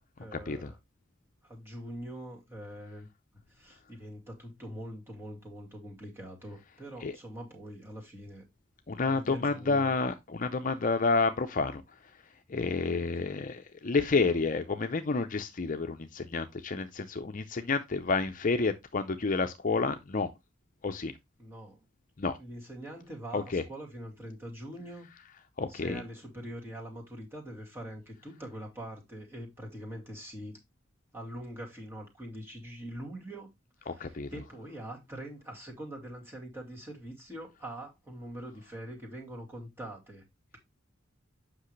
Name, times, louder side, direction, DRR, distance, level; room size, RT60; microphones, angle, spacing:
voice 1, 0.2-0.8 1.4-3.1 3.5-8.4 9.0-10.0 21.4-21.9 22.4-25.1 25.7-30.6 31.1-33.5 33.8-40.2, right 1 dB, 10° right, 2.3 m, -43 dB
voice 2, 8.9-11.8 12.5-20.3 20.8-21.1 22.2-22.4 23.3-23.6 25.6-26.0 33.9-34.3, left 4 dB, 40° left, 0.6 m, -29 dB
8.1 x 5.9 x 3.2 m
head